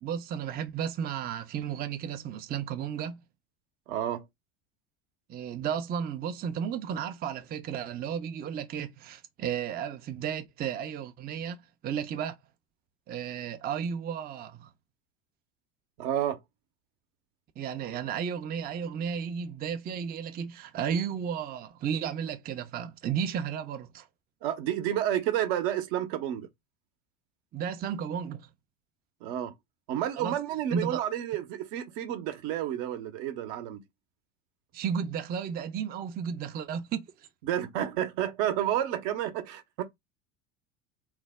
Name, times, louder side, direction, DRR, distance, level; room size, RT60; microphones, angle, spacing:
voice 1, 0.0-3.2 5.3-11.6 11.8-12.4 13.1-14.7 17.6-24.1 27.5-28.5 30.2-30.4 30.7-31.0 34.7-37.3, right 8 dB, 25° right, 0.5 m, -33 dB
voice 2, 3.9-4.2 16.0-16.4 24.4-26.5 29.2-29.5 29.9-33.8 37.4-39.8, right 11 dB, 60° right, 0.8 m, -30 dB
3.2 x 2.0 x 3.4 m
hypercardioid pair, 80°, 37 cm